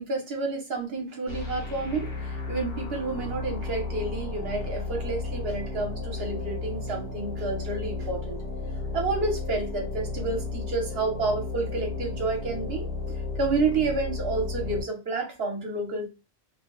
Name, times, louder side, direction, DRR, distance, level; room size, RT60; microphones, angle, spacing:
voice 1, 0.0-8.4 8.9-12.9 13.4-16.1, right 3 dB, 60° right, 2 dB, 1.2 m, -30 dB
sound 1, 1.3-14.8, left 3 dB, 55° left, 1.1 m, -33 dB
2.8 x 2.3 x 3.0 m, 0.29 s
omnidirectional pair, 1.2 m